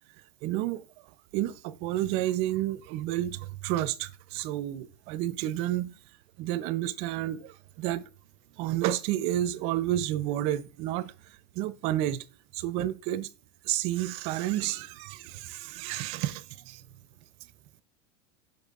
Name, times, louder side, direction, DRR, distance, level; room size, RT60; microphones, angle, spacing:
voice 1, 0.4-0.9 1.3-5.9 6.4-8.0 8.6-11.1 11.6-12.2 12.5-13.3 13.6-16.8, right 13 dB, 50° right, 0.6 m, -30 dB
8.4 x 6.2 x 2.4 m
supercardioid pair, 140°, 13 cm